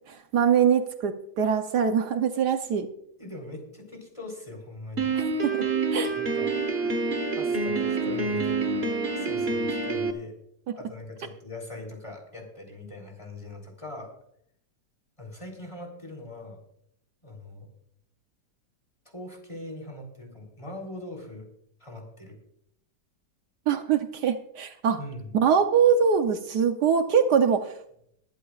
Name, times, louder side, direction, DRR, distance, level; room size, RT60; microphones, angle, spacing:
voice 1, 0.1-2.9 5.2-5.6 5.9-6.1 10.7-10.8 23.7-25.0 25.3-27.7, right 7 dB, 75° right, 7 dB, 1.4 m, -23 dB
voice 2, 3.2-5.2 6.2-6.5 7.3-8.9 9.2-10.3 10.8-14.1 15.2-16.6 17.2-17.7 19.1-21.5 21.8-22.4 25.0-25.4, left 2 dB, 15° left, 1 dB, 3.6 m, -41 dB
Piano, 5.0-10.1, right 4 dB, 40° right, 1.4 m, -27 dB
22.0 x 11.0 x 2.4 m, 0.72 s
omnidirectional pair, 1.8 m